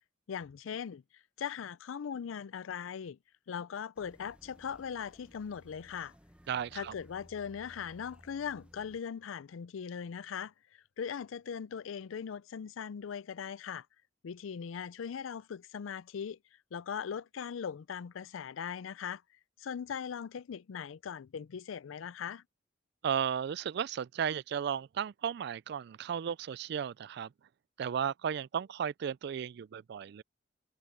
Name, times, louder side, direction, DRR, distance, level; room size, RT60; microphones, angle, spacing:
voice 1, 0.3-1.0 1.4-3.2 3.5-6.1 6.7-13.9 14.2-16.4 16.7-19.2 19.6-22.4, left 7 dB, 85° left, 0.4 m, -40 dB
sound 1, 4.0-9.0, equal, 5° right, 1.1 m, -59 dB
voice 2, 6.5-6.9 23.0-27.3 27.8-30.2, right 8 dB, 55° right, 0.3 m, -34 dB
head